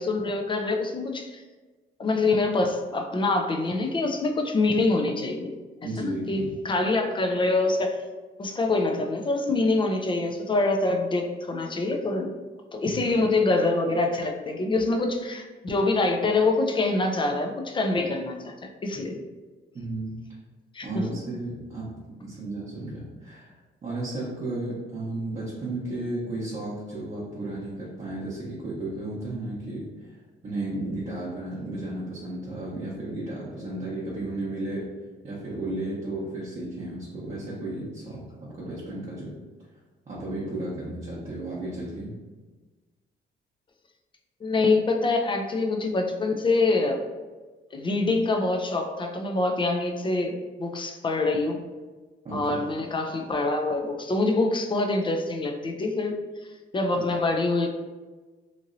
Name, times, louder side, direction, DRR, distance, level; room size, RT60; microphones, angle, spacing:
voice 1, 0.0-1.4 2.0-5.5 6.0-8.0 8.4-12.3 12.7-19.2 20.7-21.0 44.4-47.0 47.7-51.6 52.3-56.2 56.7-57.7, left 2 dB, 25° left, 3 dB, 0.4 m, -25 dB
voice 2, 5.8-6.5 12.9-13.1 19.7-20.2 20.8-23.5 23.8-30.2 30.4-34.9 35.2-39.3 40.1-42.1 52.2-52.5, right 2 dB, 35° right, -7 dB, 0.8 m, -34 dB
2.9 x 2.6 x 2.5 m, 1.3 s
cardioid pair, 100°, 20 cm